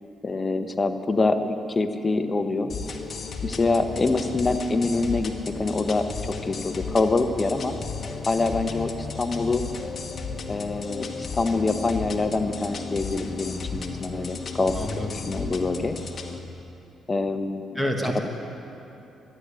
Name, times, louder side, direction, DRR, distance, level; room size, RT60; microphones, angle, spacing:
voice 1, 0.2-2.7 3.4-5.3 5.6-6.1 6.5-7.8 8.3-9.6 10.5-14.7 15.1-15.9 17.1-17.8, left 3 dB, 25° left, 7 dB, 0.9 m, -25 dB
sound 1, 2.7-16.4, left 4 dB, 50° left, 1.2 m, -34 dB
voice 2, 14.7-15.2 17.8-18.2, equal, 10° right, 2 dB, 1.4 m, -27 dB
13.0 x 10.5 x 8.4 m, 2.9 s
cardioid pair, 90°, 0 cm